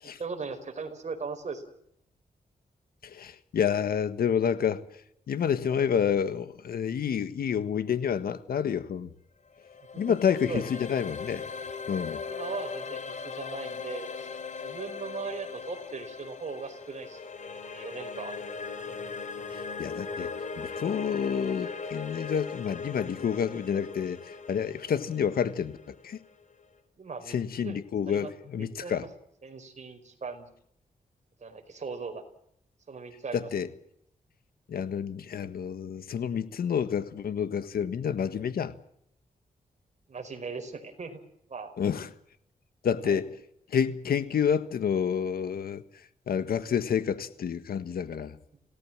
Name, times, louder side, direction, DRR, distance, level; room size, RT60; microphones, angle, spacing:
voice 1, 0.0-1.6 5.7-5.9 9.9-10.2 10.5-10.6 12.3-14.3 14.6-17.2 17.7-18.6 27.0-27.4 27.6-27.8 28.1-29.1 29.4-30.5 31.4-32.2 32.9-33.5 40.1-41.2 41.5-41.7 43.0-43.2, right 4 dB, 50° right, 4.8 m, -39 dB
voice 2, 3.0-4.8 5.3-9.1 10.0-11.5 11.9-12.2 19.5-26.2 27.3-29.1 33.3-33.7 34.7-38.7 41.8-42.1 42.8-43.3 43.7-45.8 46.3-48.4, left 7 dB, 90° left, 1.6 m, -29 dB
sound 1, 9.5-26.6, left 5 dB, 55° left, 4.3 m, -39 dB
27.5 x 18.0 x 7.5 m
cardioid pair, 90°, 15 cm